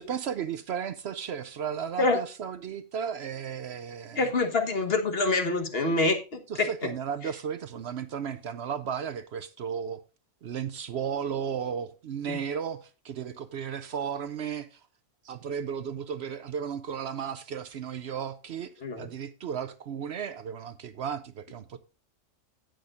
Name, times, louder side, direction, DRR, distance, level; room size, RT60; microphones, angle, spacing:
voice 1, 0.0-4.3 6.5-10.0 10.4-14.9 15.2-18.7 19.0-21.8, right 7 dB, 65° right, 0.8 m, -34 dB
voice 2, 4.1-6.7 12.3-12.4 18.8-19.1, left 3 dB, 50° left, 1.5 m, -26 dB
17.0 x 6.3 x 2.5 m
omnidirectional pair, 1.3 m